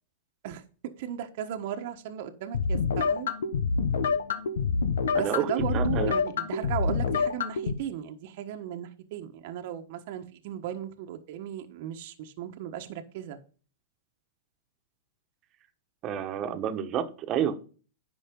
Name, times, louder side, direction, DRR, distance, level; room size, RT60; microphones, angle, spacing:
voice 1, 0.4-3.3 5.1-13.4, right 10 dB, 55° right, 1.2 m, -36 dB
sound 1, 2.5-7.7, left 5 dB, 85° left, 1.0 m, -27 dB
voice 2, 5.1-6.1 16.0-17.6, right 9 dB, 30° right, 1.3 m, -30 dB
10.5 x 5.9 x 3.7 m
hypercardioid pair, 135°, 0 cm